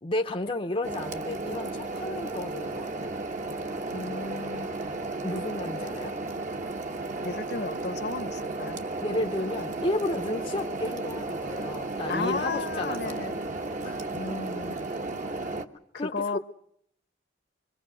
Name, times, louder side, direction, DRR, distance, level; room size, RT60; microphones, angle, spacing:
voice 1, 0.0-3.1 5.2-6.2 9.0-13.2 13.8-14.1 15.9-16.4, left 1 dB, 30° left, 0.8 m, -32 dB
sound 1, 0.8-15.6, right 2 dB, 40° right, 1.2 m, -34 dB
voice 2, 3.9-4.7 7.2-8.8 12.1-13.3 14.1-14.8 15.3-15.5 15.9-16.4, left 3 dB, 60° left, 1.2 m, -34 dB
25.5 x 22.5 x 6.3 m
head